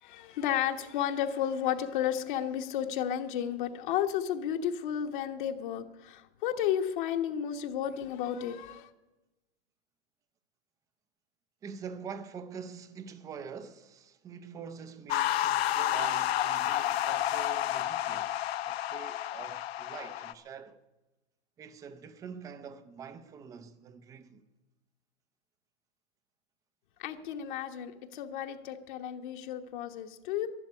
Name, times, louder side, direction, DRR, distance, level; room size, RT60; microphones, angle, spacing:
voice 1, 0.0-8.9 27.0-30.5, left 10 dB, 50° left, 1.2 m, -32 dB
voice 2, 11.6-20.8 21.6-24.4, right 6 dB, 10° right, 0.5 m, -45 dB
sound 1, 15.1-20.3, left 12 dB, 65° left, 0.9 m, -30 dB
12.0 x 11.5 x 9.5 m
hypercardioid pair, 160°, 33 cm